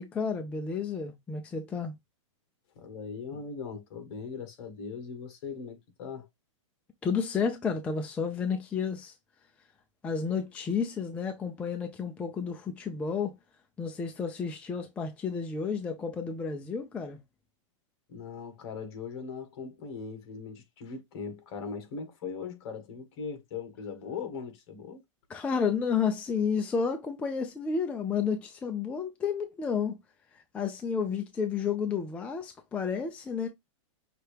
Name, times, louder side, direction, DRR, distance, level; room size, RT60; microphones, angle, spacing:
voice 1, 0.0-1.9 7.0-9.2 10.0-13.3 13.8-17.2 25.3-30.0 30.3-33.5, left 6 dB, 10° left, 0.3 m, -31 dB
voice 2, 2.7-6.3 18.1-25.0, left 5 dB, 50° left, 1.6 m, -40 dB
5.8 x 2.8 x 3.3 m
supercardioid pair, 160°, 17 cm